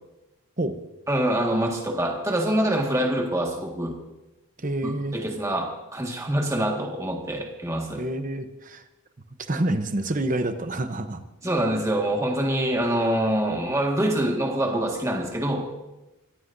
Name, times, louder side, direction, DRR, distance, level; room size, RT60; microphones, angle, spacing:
voice 1, 1.1-4.0 4.8-8.0 11.4-15.9, right 1 dB, 15° right, 0 dB, 1.8 m, -25 dB
voice 2, 4.6-5.2 8.0-8.8 9.4-11.2, right 1 dB, 35° right, 9 dB, 0.9 m, -27 dB
24.5 x 16.0 x 2.7 m, 1.0 s
head